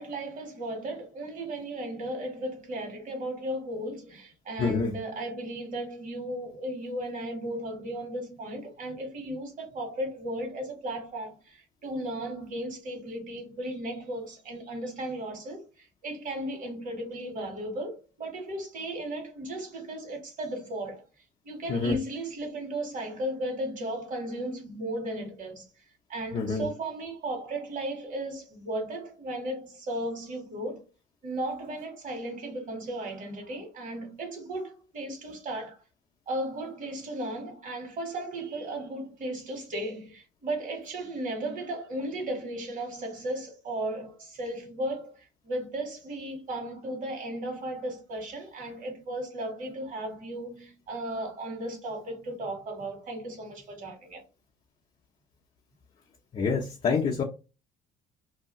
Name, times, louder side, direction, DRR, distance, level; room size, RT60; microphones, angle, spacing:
voice 1, 0.0-21.0 21.4-25.6 26.1-30.9 31.2-35.8 36.3-54.2, right 1 dB, 50° right, 1.5 m, -35 dB
voice 2, 4.6-4.9 21.7-22.0 26.3-26.7 56.3-57.2, left 4 dB, 40° left, 0.6 m, -27 dB
2.7 x 2.3 x 3.0 m
supercardioid pair, 75°, 17 cm